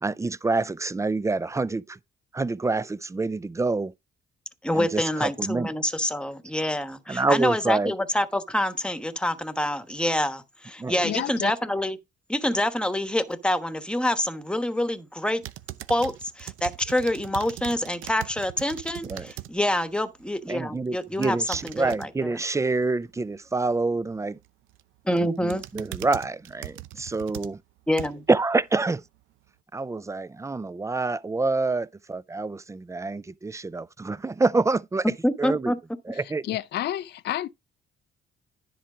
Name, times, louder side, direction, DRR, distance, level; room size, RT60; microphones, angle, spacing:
voice 1, 0.0-2.0 2.3-3.9 4.7-5.7 7.1-7.9 10.8-11.0 19.0-19.3 20.5-24.4 25.2-27.6 28.3-29.0 29.7-35.1 35.4-35.7 36.1-36.4, right 3 dB, 15° right, 0.4 m, -27 dB
voice 2, 4.6-12.0 12.3-15.4 15.9-21.4 21.6-22.4 25.0-25.6 27.9-28.2 35.2-35.8, left 1 dB, 5° left, 1.2 m, -26 dB
voice 3, 11.0-11.5 36.4-37.5, left 12 dB, 55° left, 0.4 m, -29 dB
sound 1, 15.4-19.5 19.9-20.2 21.0-22.1 24.4-24.8 25.2-28.3 28.9-29.0, right 15 dB, 85° right, 0.7 m, -40 dB
10.5 x 4.4 x 5.0 m
cardioid pair, 90°, 20 cm